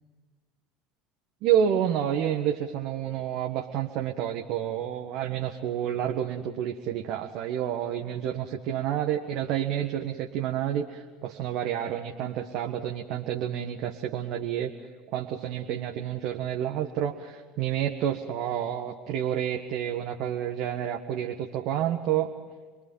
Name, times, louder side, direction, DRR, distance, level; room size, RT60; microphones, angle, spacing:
voice 1, 1.4-14.7 15.1-22.3, right 10 dB, 60° right, 2 dB, 1.6 m, -29 dB
27.0 x 22.5 x 5.7 m, 1.5 s
hypercardioid pair, 70°, 0 cm